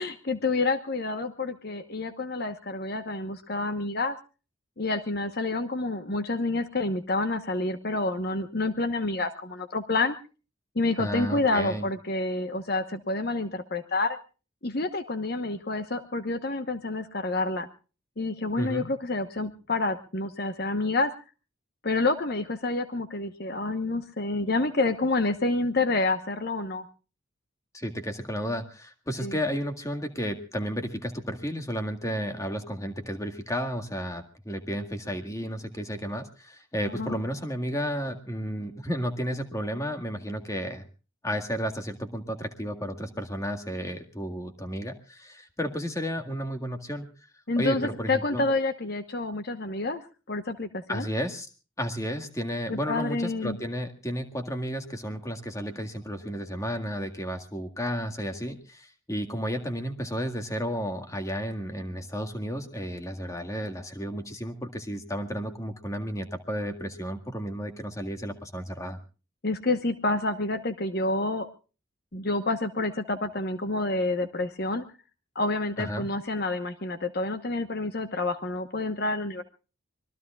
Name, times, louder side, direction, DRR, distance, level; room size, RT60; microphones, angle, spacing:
voice 1, 0.0-4.2 4.8-10.2 10.7-14.2 14.6-17.7 18.2-21.1 21.8-26.8 29.2-29.4 36.9-37.1 47.5-50.0 50.3-51.1 52.7-53.6 69.4-71.5 72.1-74.9 75.3-79.4, left 2 dB, 50° left, 9 dB, 1.1 m, -28 dB
voice 2, 11.0-11.9 18.6-18.9 27.7-40.8 41.2-47.1 47.6-48.4 50.9-51.5 51.8-69.0 75.8-76.1, equal, 15° left, 5 dB, 1.8 m, -32 dB
25.5 x 21.5 x 2.4 m, 0.36 s
head